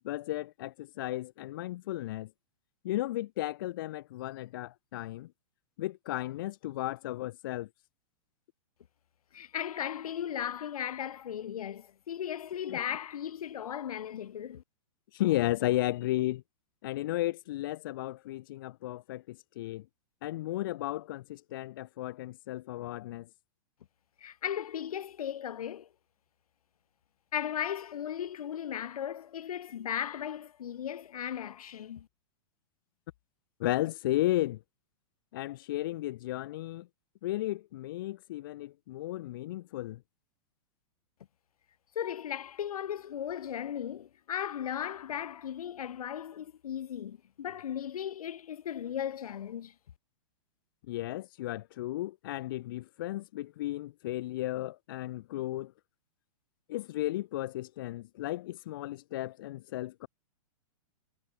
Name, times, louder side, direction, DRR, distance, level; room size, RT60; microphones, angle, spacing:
voice 1, 0.0-2.3 2.8-5.3 5.8-7.7 12.7-12.8 15.1-16.4 16.8-19.8 20.2-23.3 33.6-34.6 35.3-36.9 37.2-40.0 50.9-55.7 56.7-60.1, left 15 dB, 35° left, 0.9 m, -34 dB
voice 2, 9.3-14.6 24.2-25.9 27.3-32.1 42.0-49.7, left 9 dB, 85° left, 2.3 m, -36 dB
supercardioid pair, 180°, 18 cm